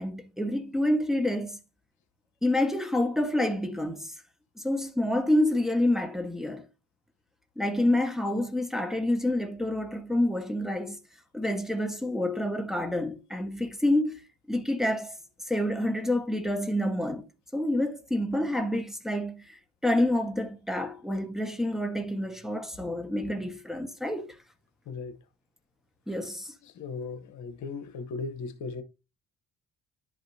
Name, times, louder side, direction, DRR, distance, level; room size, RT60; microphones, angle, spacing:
voice 1, 0.0-1.6 2.4-4.1 4.6-6.7 7.6-11.0 11.3-14.2 14.5-15.2 15.4-17.2 17.5-24.3 26.1-26.5, left 1 dB, ahead, 1.2 m, -28 dB
voice 2, 24.9-25.2 26.6-28.8, left 4 dB, 70° left, 1.0 m, -37 dB
11.0 x 5.1 x 2.7 m
cardioid pair, 90°, 30 cm